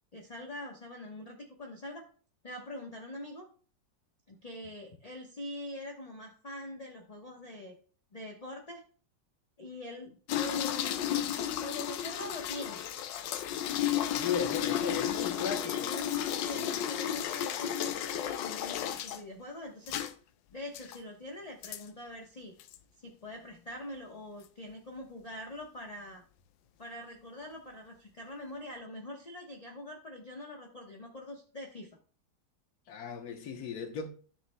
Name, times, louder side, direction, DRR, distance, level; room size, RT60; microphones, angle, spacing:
voice 1, 0.1-2.0 2.4-3.5 4.3-7.7 8.1-8.8 9.6-11.0 11.6-12.9 15.0-16.1 16.3-19.9 20.5-22.5 23.0-26.2 26.8-31.9, left 1 dB, 25° left, 1.0 m, -44 dB
sound 1, 10.3-19.2 19.9-20.1 20.7-21.0 21.6-21.8 22.6-22.8, left 10 dB, 85° left, 1.3 m, -33 dB
voice 2, 14.1-16.0 16.5-16.7 32.9-34.1, left 7 dB, 60° left, 1.5 m, -36 dB
13.0 x 6.8 x 2.2 m
omnidirectional pair, 1.9 m